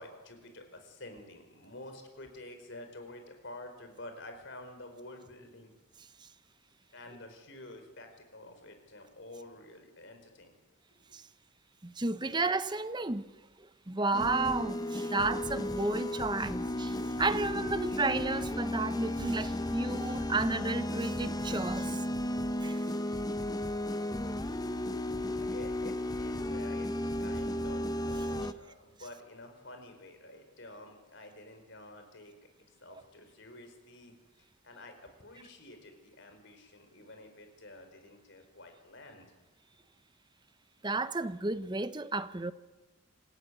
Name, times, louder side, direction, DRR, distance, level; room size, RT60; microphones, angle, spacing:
voice 1, 0.0-5.7 6.9-10.5 12.3-12.4 25.1-26.9 27.2-34.1 34.6-39.2, left 1 dB, 55° left, 4.7 m, -49 dB
voice 2, 11.8-13.3 13.9-22.0 22.6-22.8 40.8-42.5, right 3 dB, 20° right, 0.8 m, -32 dB
sound 1, 14.1-28.5, left 1 dB, 20° left, 0.7 m, -34 dB
27.5 x 15.5 x 9.5 m
head